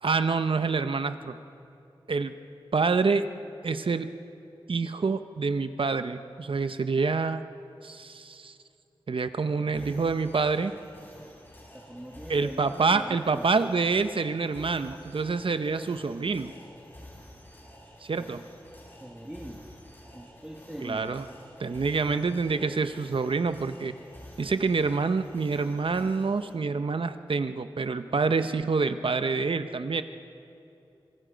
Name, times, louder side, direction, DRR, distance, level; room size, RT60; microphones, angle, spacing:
voice 1, 0.0-1.4 2.1-2.3 2.7-3.3 3.6-4.1 4.7-7.4 7.8-8.6 9.1-10.7 12.3-16.5 18.0-18.4 20.8-21.3 21.6-23.9 24.4-30.0, right 4 dB, 70° right, 10 dB, 0.9 m, -27 dB
sound 1, 9.7-26.5, equal, 20° left, 5.0 m, -50 dB
voice 2, 11.7-13.4 18.2-18.4 18.9-19.7 20.1-21.2, equal, 10° right, -1 dB, 2.0 m, -42 dB
25.5 x 23.0 x 5.2 m, 2.7 s
wide cardioid pair, 80°, 9 cm